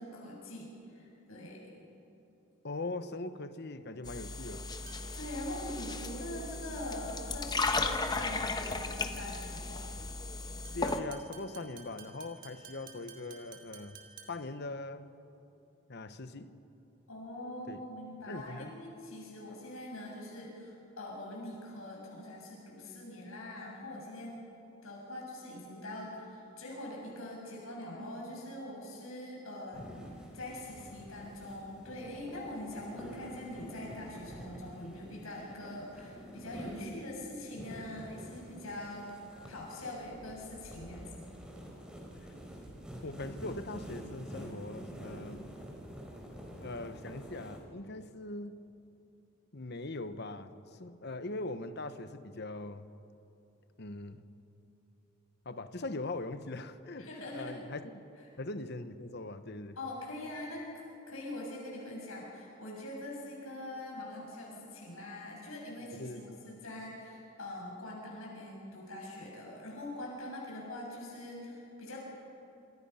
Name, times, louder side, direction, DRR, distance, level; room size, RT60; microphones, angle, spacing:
voice 1, 0.0-1.6 5.1-9.8 17.1-24.4 24.8-29.9 30.3-39.1 39.5-41.1 57.0-57.6 59.8-72.0, left 1 dB, 85° left, 6.7 m, -43 dB
voice 2, 2.6-4.7 10.7-15.1 15.9-16.6 17.7-17.8 18.3-18.7 43.0-45.5 46.6-48.6 49.5-52.9 53.8-54.3 55.4-58.0 58.4-59.8 65.9-66.4, left 2 dB, 55° left, 1.1 m, -41 dB
sound 1, 4.1-11.0, left 3 dB, 20° left, 1.2 m, -36 dB
sound 2, 4.9-5.3 7.8-8.2 10.7-14.6, right 6 dB, 40° right, 2.6 m, -54 dB
sound 3, 29.7-47.6, equal, 5° right, 4.3 m, -47 dB
27.0 x 26.5 x 5.7 m
head